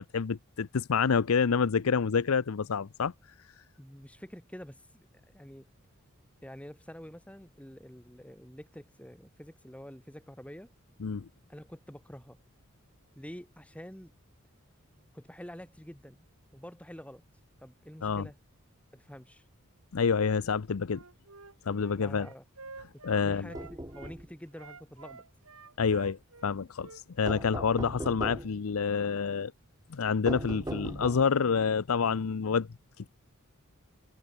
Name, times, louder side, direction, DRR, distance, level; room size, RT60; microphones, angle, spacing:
voice 1, 0.0-3.1 11.0-11.3 18.0-18.3 19.9-21.0 21.7-22.3 23.0-23.5 25.8-26.9 27.2-29.5 29.9-32.7, left 5 dB, 85° left, 0.6 m, -28 dB
voice 2, 3.8-5.1 5.3-5.7 6.4-10.7 11.5-12.4 13.1-14.1 15.1-16.3 16.5-17.2 17.6-18.4 18.9-19.4 22.0-22.4 23.2-25.2, equal, 5° left, 3.0 m, -47 dB
Wind instrument woodwind instrument, 20.9-24.1 24.5-27.9, right 3 dB, 90° right, 4.4 m, -49 dB
sound 1, 23.3-24.3 27.3-28.6 30.3-31.4, right 1 dB, 15° right, 2.1 m, -38 dB
head